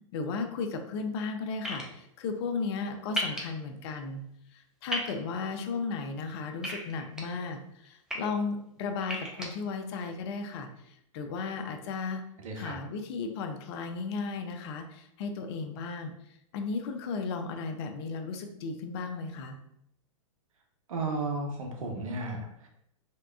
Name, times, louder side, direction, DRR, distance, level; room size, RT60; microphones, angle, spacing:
voice 1, 0.1-4.2 4.5-10.7 11.1-12.2 12.6-16.1 16.5-19.6, left 4 dB, 50° left, 5 dB, 0.5 m, -35 dB
sound 1, 1.6-1.8 3.2-3.4 4.9-5.1 6.6-7.2 7.9-8.2 9.0-9.5, equal, 5° right, 0.5 m, -32 dB
voice 2, 12.4-12.7 20.9-22.7, right 3 dB, 75° right, 3 dB, 0.8 m, -34 dB
3.4 x 2.9 x 2.3 m, 0.76 s
hypercardioid pair, 120°, 18 cm